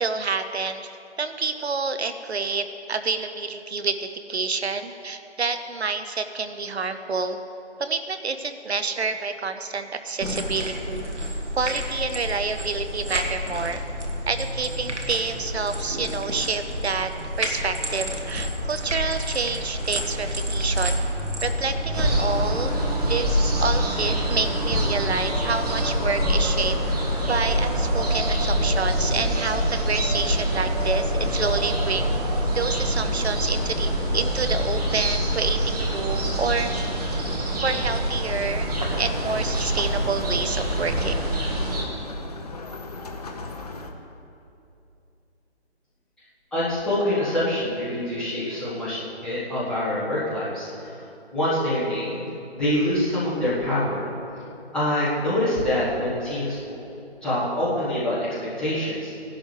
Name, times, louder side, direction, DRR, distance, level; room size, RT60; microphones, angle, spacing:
voice 1, 0.0-7.4 7.8-11.1 11.6-13.8 14.3-17.1 17.4-21.0 21.4-22.8 23.1-26.8 27.3-32.1 32.5-36.7 37.6-38.7 39.0-41.3, right 4 dB, 70° right, 9 dB, 0.8 m, -28 dB
sound 1, 10.2-22.0, equal, 85° right, 1.8 m, -30 dB
sound 2, 21.9-41.8, equal, 35° right, 1.6 m, -25 dB
sound 3, 38.2-43.9, left 3 dB, 35° left, 0.8 m, -38 dB
voice 2, 46.5-50.9 51.3-52.2 52.5-54.1 54.7-56.7 57.2-59.1, left 1 dB, 5° left, -12 dB, 1.2 m, -25 dB
17.0 x 11.0 x 3.3 m, 2.7 s
figure-of-eight pair, 155°, 34 cm